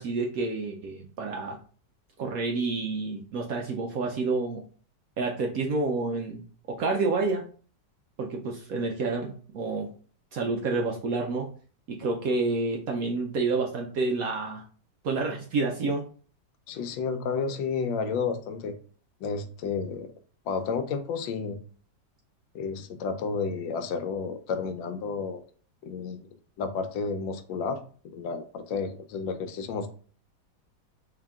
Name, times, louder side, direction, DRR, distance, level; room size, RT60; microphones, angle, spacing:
voice 1, 0.0-1.6 2.2-4.6 5.2-6.4 6.7-7.4 8.2-9.9 10.3-11.5 11.9-14.6 15.0-16.0, right 3 dB, 70° right, 1 dB, 0.8 m, -29 dB
voice 2, 16.7-18.8 19.2-20.1 20.5-21.6 22.5-25.4 25.8-26.3 26.6-27.8 28.0-29.9, left 5 dB, 90° left, 8 dB, 1.3 m, -31 dB
3.4 x 2.8 x 3.5 m, 0.42 s
omnidirectional pair, 2.0 m